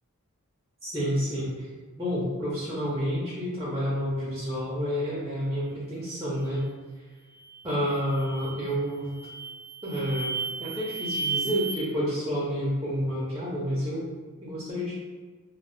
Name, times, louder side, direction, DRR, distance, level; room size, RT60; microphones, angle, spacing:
voice 1, 0.8-1.7 2.0-6.7 7.6-9.1 9.8-14.0 14.4-14.9, equal, 15° right, -8 dB, 0.5 m, -29 dB
sound 1, 7.3-7.6 8.1-8.6 9.1-11.8, right 4 dB, 80° left, 1.4 m, -34 dB
2.6 x 2.0 x 3.1 m, 1.4 s
head